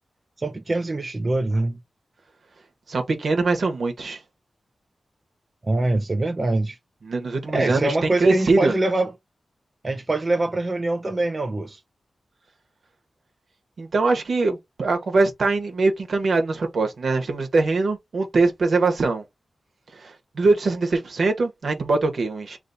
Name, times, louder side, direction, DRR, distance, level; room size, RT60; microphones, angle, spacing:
voice 1, 0.4-1.8 5.6-6.8 7.5-9.1 9.8-11.8, right 2 dB, 35° right, 0.6 m, -24 dB
voice 2, 2.9-4.2 7.0-7.9 8.2-8.7 13.8-19.2 20.0-22.6, right 3 dB, 70° right, 1.3 m, -22 dB
3.0 x 2.7 x 4.5 m
cardioid pair, 75°, 0 cm